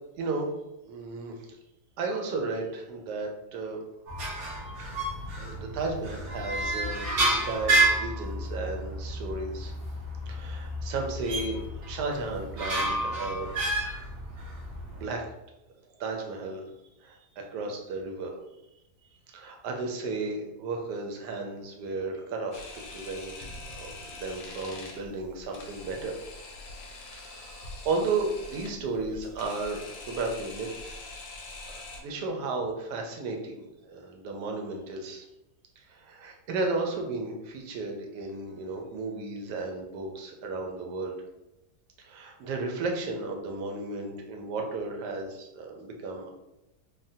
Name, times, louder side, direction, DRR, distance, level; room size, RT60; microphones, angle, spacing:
voice 1, 0.2-0.5 0.8-1.5 2.0-3.8 4.8-9.7 10.3-14.0 15.0-15.3 16.0-16.7 17.0-18.3 19.3-22.7 22.9-26.2 27.1-31.0 31.7-35.3 35.8-41.2 42.0-46.3, right 3 dB, 90° right, 2 dB, 1.2 m, -34 dB
sound 1, 4.1-15.0, right 2 dB, 60° right, 1.3 m, -30 dB
Camera, 22.5-32.0, left 2 dB, 70° left, 0.9 m, -44 dB
3.4 x 2.1 x 2.6 m, 0.93 s
omnidirectional pair, 1.7 m